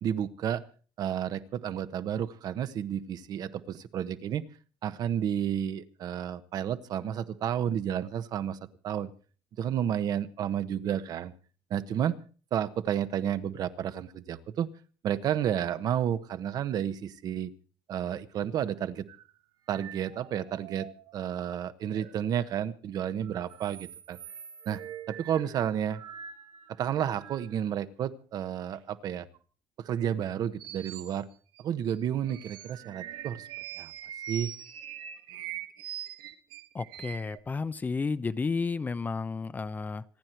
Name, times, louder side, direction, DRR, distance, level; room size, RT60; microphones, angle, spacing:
voice 1, 0.0-0.6 1.0-4.4 4.8-8.6 8.8-9.1 9.6-11.3 11.7-12.2 12.5-14.7 15.0-17.5 17.9-19.1 19.7-24.2 24.7-24.8 25.1-26.0 26.8-29.3 29.8-31.3 31.6-33.5 33.8-33.9 34.3-34.5, right 9 dB, 55° right, 11 dB, 1.2 m, -31 dB
sound 1, 19.1-19.3 19.7-21.6 21.9-22.2 23.2-27.6 28.7-28.8 29.3-29.4 30.0-30.2 30.6-31.2 31.6-31.7 31.9-37.4, right 10 dB, 80° right, 1.7 m, -44 dB
voice 2, 36.7-40.0, left 4 dB, 20° left, 14 dB, 0.7 m, -32 dB
26.5 x 9.8 x 4.6 m, 0.40 s
cardioid pair, 120°, 8 cm